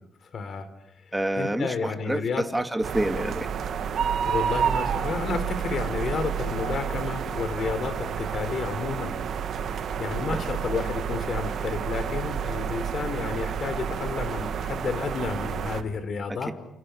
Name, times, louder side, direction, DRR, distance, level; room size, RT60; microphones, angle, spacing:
voice 1, 0.3-0.7 1.4-2.4 4.3-9.1 10.0-16.5, left 5 dB, 50° left, 11 dB, 4.2 m, -31 dB
voice 2, 1.1-3.5 10.3-10.5 16.3-16.5, right 1 dB, 10° right, 7 dB, 2.6 m, -28 dB
sound 1, 2.8-15.8, right 7 dB, 60° right, 2.3 m, -30 dB
29.0 x 28.5 x 6.6 m, 0.79 s
cardioid pair, 115°, 0 cm